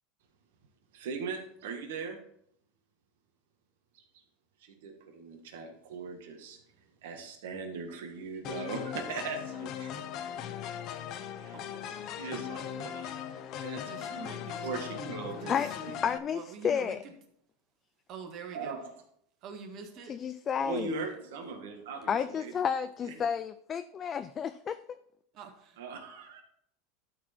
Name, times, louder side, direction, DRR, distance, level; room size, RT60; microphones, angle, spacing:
voice 1, 0.9-2.2 3.9-4.0 4.6-6.6 7.0-9.9 11.4-11.6 12.2-14.2 14.6-15.5 18.5-18.9 20.6-22.5 23.0-23.1 25.8-26.4, right 4 dB, 80° right, 3 dB, 1.7 m, -39 dB
sound 1, 8.4-16.2, left 9 dB, 45° left, 0.7 m, -39 dB
voice 2, 11.5-12.2 13.9-16.0 16.3-17.2 18.1-18.8 19.4-20.2 21.0-21.1 23.1-23.3 25.3-25.8, right 5 dB, 45° right, 4 dB, 1.6 m, -46 dB
voice 3, 16.0-17.0 20.1-21.0 22.1-25.0, left 7 dB, 25° left, 11 dB, 0.3 m, -31 dB
12.0 x 4.5 x 4.5 m, 0.70 s
supercardioid pair, 145°, 0 cm